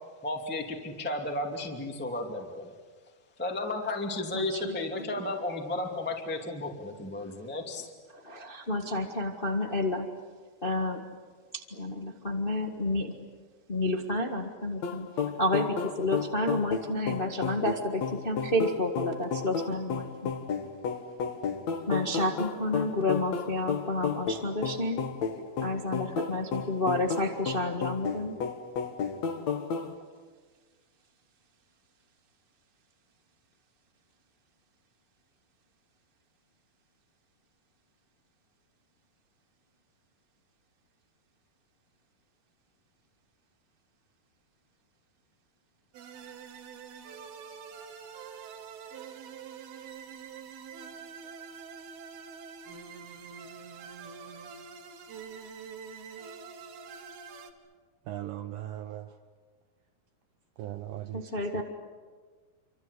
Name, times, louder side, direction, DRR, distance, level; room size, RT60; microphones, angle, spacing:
voice 1, 0.2-2.8 3.4-7.9, left 2 dB, 5° left, 1 dB, 1.9 m, -33 dB
voice 2, 4.3-4.8 8.1-10.1 10.6-11.0 11.5-13.1 13.7-15.1 15.4-20.3 21.9-25.0 25.6-28.3 61.1-61.6, left 1 dB, 85° left, 3 dB, 0.5 m, -30 dB
sound 1, 14.8-29.9, left 6 dB, 55° left, 2.6 m, -33 dB
sound 2, 45.9-57.5, right 6 dB, 90° right, 3.6 m, -45 dB
voice 3, 58.1-59.1 60.6-61.6, right 12 dB, 70° right, 5 dB, 2.5 m, -39 dB
28.5 x 25.5 x 8.2 m, 1.5 s
omnidirectional pair, 4.3 m